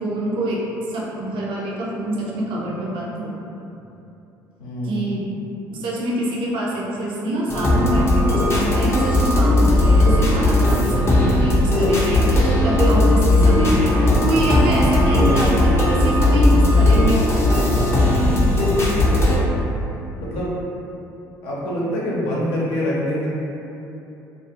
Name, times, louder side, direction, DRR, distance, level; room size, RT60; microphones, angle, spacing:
voice 1, 0.0-3.3 4.8-5.3 5.7-17.2, right 1 dB, 50° right, -5 dB, 0.5 m, -25 dB
voice 2, 4.6-5.3 18.2-19.6 20.2-20.6 21.4-23.3, left 1 dB, 60° left, -6 dB, 0.7 m, -26 dB
sound 1, 7.5-19.4, left 1 dB, 25° left, 0.6 m, -17 dB
2.4 x 2.3 x 2.7 m, 2.8 s
figure-of-eight pair, 55°, 11 cm